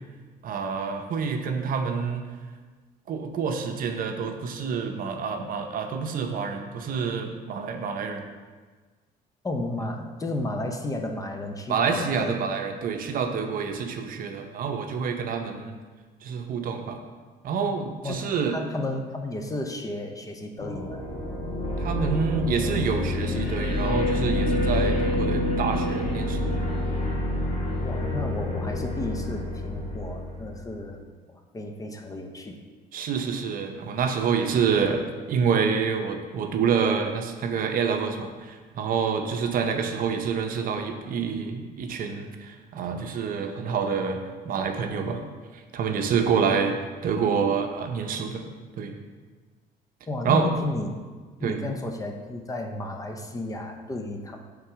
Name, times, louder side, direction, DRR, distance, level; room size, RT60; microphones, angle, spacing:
voice 1, 0.4-2.3 3.1-8.2 11.7-15.8 16.2-17.0 17.4-18.6 21.8-26.5 32.9-35.0 35.3-44.2 44.4-45.2 45.7-46.8 47.0-48.5 48.8-48.9 50.2-50.5 51.4-51.6, right 6 dB, 55° right, 5 dB, 0.6 m, -27 dB
voice 2, 9.4-12.4 18.0-21.0 27.8-31.0 31.3-32.6 50.1-51.0 51.4-54.4, left 2 dB, 20° left, 4 dB, 0.6 m, -33 dB
sound 1, 20.6-30.8, left 1 dB, 50° left, 1.8 m, -27 dB
5.8 x 3.8 x 4.7 m, 1.4 s
cardioid pair, 110°, 17 cm